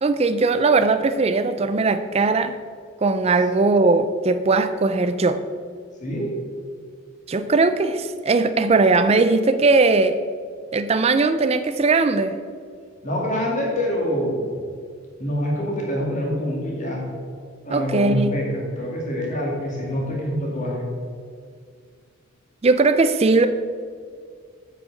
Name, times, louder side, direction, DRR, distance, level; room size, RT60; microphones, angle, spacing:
voice 1, 0.0-2.6 3.0-5.4 7.3-10.2 10.7-12.4 17.7-18.4 22.6-23.5, right 3 dB, 30° right, 10 dB, 0.4 m, -19 dB
voice 2, 6.0-6.4 13.0-14.5 15.2-17.0 17.6-20.9, equal, 35° left, -3 dB, 2.2 m, -25 dB
7.4 x 6.4 x 6.5 m, 2.1 s
head